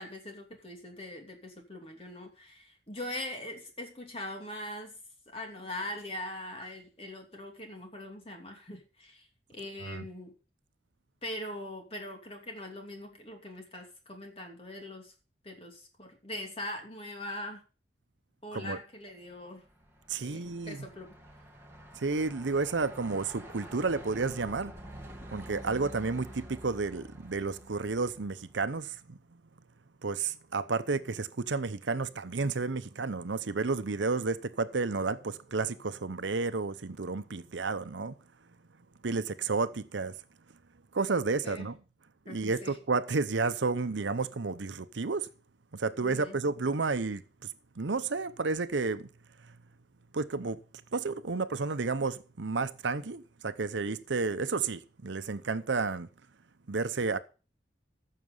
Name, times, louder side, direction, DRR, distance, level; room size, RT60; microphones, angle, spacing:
voice 1, 0.0-5.0 5.3-9.3 9.5-10.3 11.2-15.1 15.4-17.6 18.4-19.6 20.2-21.1 41.4-41.7 42.3-42.8 46.0-46.4, left 1 dB, 30° left, 2.8 m, -42 dB
Truck, 19.3-28.7, right 1 dB, 15° right, 1.7 m, -48 dB
voice 2, 20.1-20.9 21.9-24.7 25.3-29.4 30.0-38.1 39.0-40.2 40.9-41.8 42.3-45.3 45.7-47.5 47.8-49.1 49.4-49.5 50.1-50.6 50.9-56.1 56.7-57.2, right 4 dB, 80° right, 0.8 m, -31 dB
14.5 x 6.6 x 5.4 m
head